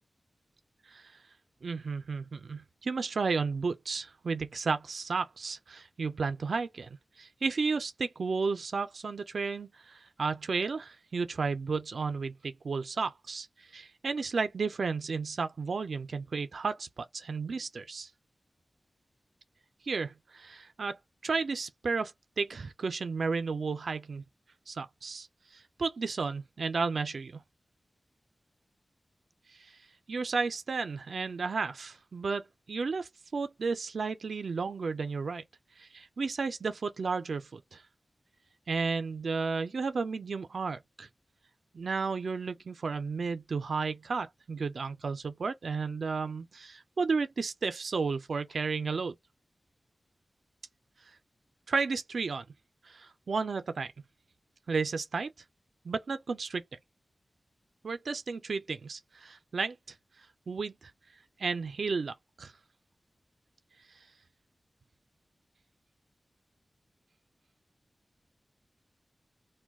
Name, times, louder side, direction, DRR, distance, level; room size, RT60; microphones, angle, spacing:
voice 1, 1.6-18.1 19.9-21.0 21.2-24.2 24.7-25.3 25.5-27.4 29.6-29.8 30.1-35.4 35.8-37.8 38.7-41.1 41.7-49.2 51.7-52.5 52.8-53.9 54.7-55.3 55.8-56.6 57.8-59.7 60.5-60.7 61.4-62.5, right 4 dB, 80° right, 0.4 m, -33 dB
2.3 x 2.1 x 3.4 m
wide cardioid pair, 70°, 0 cm